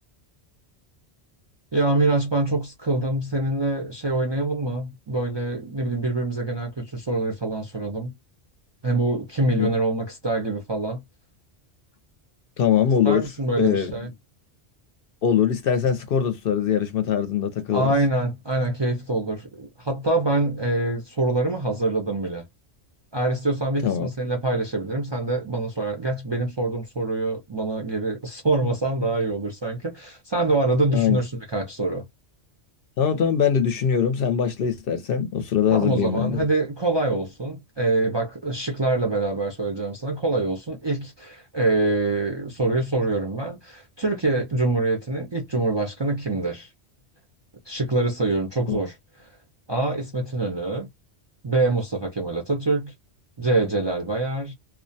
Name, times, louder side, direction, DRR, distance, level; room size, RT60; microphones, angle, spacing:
voice 1, 1.7-8.1 8.8-11.0 13.0-14.1 17.7-22.4 23.1-32.0 35.7-46.7 47.7-48.9 49.7-50.9 51.4-52.9 53.4-54.5, right 2 dB, 35° right, 0.4 m, -25 dB
voice 2, 12.6-13.3 13.6-13.9 15.2-17.9 23.8-24.1 30.9-31.2 33.0-36.5 48.7-48.8, left 8 dB, 65° left, 0.7 m, -22 dB
2.3 x 2.1 x 2.5 m
omnidirectional pair, 1.1 m